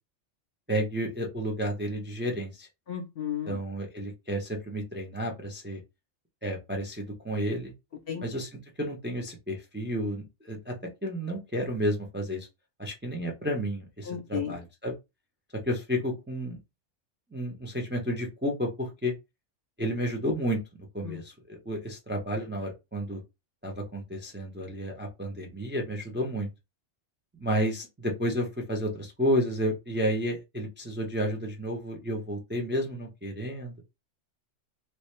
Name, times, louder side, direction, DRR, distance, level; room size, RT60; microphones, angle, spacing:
voice 1, 0.7-2.7 3.5-5.8 6.4-7.7 8.2-8.5 8.8-10.7 11.0-12.5 12.8-15.0 15.6-16.6 17.3-19.1 19.8-20.6 20.9-23.2 23.6-26.5 27.3-33.7, equal, 10° right, 0.6 m, -31 dB
voice 2, 2.9-3.6 8.1-8.3 14.1-14.5 21.0-21.2, left 8 dB, 55° left, 0.9 m, -33 dB
3.0 x 2.7 x 3.2 m
omnidirectional pair, 1.3 m